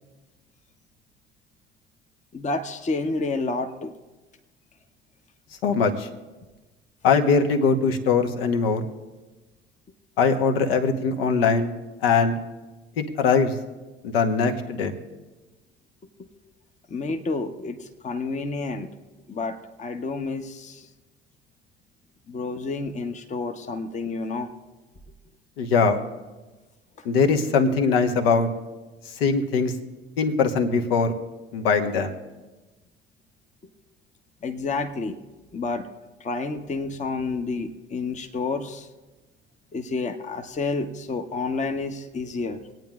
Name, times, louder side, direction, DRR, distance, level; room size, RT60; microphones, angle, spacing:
voice 1, 2.3-3.9 16.9-18.9 19.3-20.9 22.3-24.5 34.4-35.2 35.5-35.9 36.2-38.9 39.7-42.6, left 3 dB, 25° left, 6 dB, 0.8 m, -29 dB
voice 2, 5.6-6.1 7.0-8.8 10.2-11.7 12.0-12.4 13.0-13.5 14.0-14.9 25.6-26.0 27.0-28.5 29.2-29.7 30.2-31.1 31.5-32.1, left 5 dB, 70° left, 5 dB, 1.1 m, -21 dB
26.0 x 9.1 x 2.4 m, 1.2 s
figure-of-eight pair, 60°, 30 cm